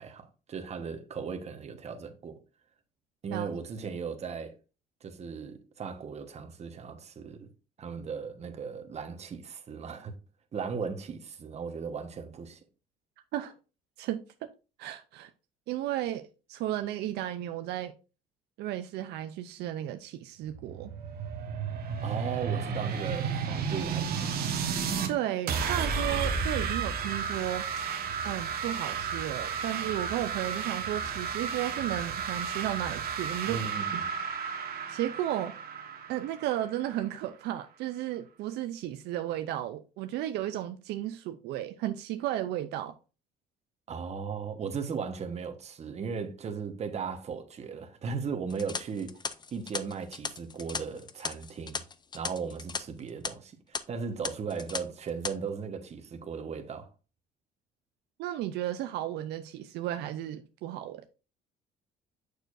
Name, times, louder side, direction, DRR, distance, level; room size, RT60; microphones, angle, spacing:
voice 1, 0.0-2.4 3.2-4.5 5.0-7.5 7.8-10.1 10.5-12.6 22.0-24.5 33.5-34.1 43.9-49.1 49.5-51.8 52.1-56.9, right 5 dB, 40° right, 1.2 m, -37 dB
voice 2, 14.0-14.5 14.8-15.3 15.7-17.9 18.6-20.9 25.1-27.7 28.2-33.6 33.9-34.0 34.9-35.5 36.1-42.9 58.2-61.1, right 12 dB, 80° right, 0.5 m, -34 dB
sound 1, 20.5-25.1 25.5-37.0, right 6 dB, 65° right, 1.2 m, -33 dB
sound 2, 48.5-52.8 53.1-53.3 53.7-53.8 54.2-54.8 55.1-55.3, left 5 dB, 25° left, 0.5 m, -36 dB
6.6 x 6.5 x 2.6 m
cardioid pair, 110°, 17 cm